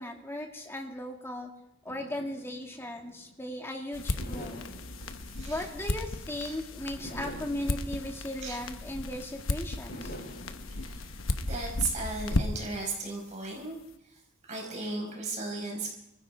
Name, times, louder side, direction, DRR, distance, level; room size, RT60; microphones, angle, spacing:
voice 1, 0.0-1.5 1.9-4.7 5.5-10.1, left 1 dB, 10° left, 1 dB, 2.1 m, -37 dB
sound 1, 1.9-3.6 4.2-6.4 7.0-9.3 9.9-12.2, equal, 50° left, 7.6 m, -47 dB
sound 2, 3.9-12.8, left 2 dB, 80° left, 1.1 m, -35 dB
voice 2, 10.8-11.1 11.4-13.8 14.5-15.9, right 3 dB, 35° right, 0 dB, 4.9 m, -35 dB
25.5 x 15.0 x 3.5 m, 0.83 s
head